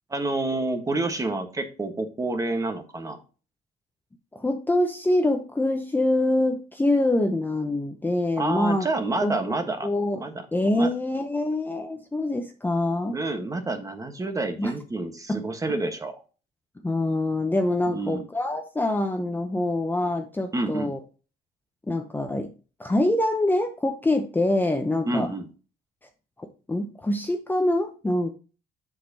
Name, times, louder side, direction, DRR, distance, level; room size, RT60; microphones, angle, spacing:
voice 1, 0.1-3.2 8.4-9.9 10.1-10.5 10.7-10.9 13.1-16.2 17.9-18.3 20.5-20.9 25.1-25.5, right 2 dB, 20° right, 7 dB, 1.3 m, -28 dB
voice 2, 4.3-8.9 9.2-9.5 9.8-10.2 10.5-13.2 14.6-14.7 15.3-15.4 16.8-21.0 21.9-22.5 22.8-25.3 26.4-28.3, left 1 dB, 10° left, 5 dB, 0.7 m, -25 dB
7.5 x 6.6 x 2.8 m, 0.35 s
cardioid pair, 110°, 17 cm